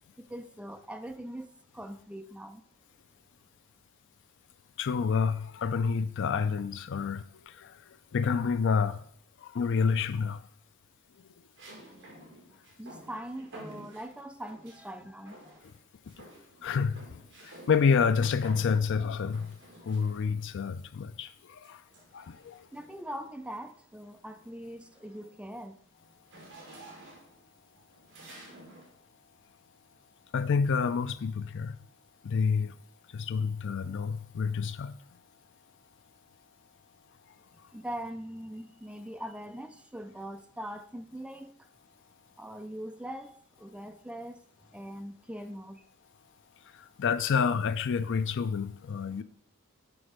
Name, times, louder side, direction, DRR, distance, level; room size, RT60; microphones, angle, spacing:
voice 1, 0.2-2.6 12.8-15.6 22.7-25.8 37.7-41.6 42.4-44.4 44.7-45.8, right 1 dB, 5° right, 0.4 m, -42 dB
voice 2, 4.8-7.2 7.6-7.8 8.1-9.0 9.4-10.4 16.6-17.2 17.7-19.6 19.9-21.8 22.1-22.6 30.3-31.8 32.2-32.7 33.1-34.9 47.0-49.2, left 5 dB, 55° left, 0.4 m, -28 dB
sound 1, 9.7-10.2 11.6-14.9 15.3-15.8 16.1-20.5 21.6-23.0 23.5-23.8 24.2-28.9, right 1 dB, 60° right, 2.1 m, -51 dB
6.2 x 5.1 x 5.0 m
head